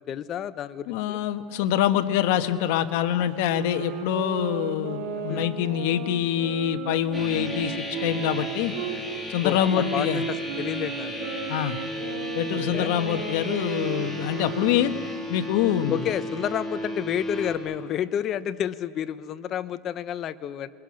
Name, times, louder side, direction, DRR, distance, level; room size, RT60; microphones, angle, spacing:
voice 1, 0.1-1.2 5.1-5.5 9.4-11.3 12.5-12.9 15.9-20.7, left 10 dB, 35° left, 13 dB, 0.9 m, -30 dB
voice 2, 0.9-7.7 8.0-8.7 9.3-10.2 11.5-11.8 12.3-14.9 15.3-16.0, left 11 dB, 65° left, 8 dB, 1.4 m, -25 dB
sound 1, 3.3-9.0 9.7-15.1, right 7 dB, 75° right, 3.7 m, -35 dB
sound 2, 7.1-17.6, left 1 dB, ahead, 3.6 m, -35 dB
28.5 x 22.5 x 6.5 m, 2.3 s
supercardioid pair, 135°, 0 cm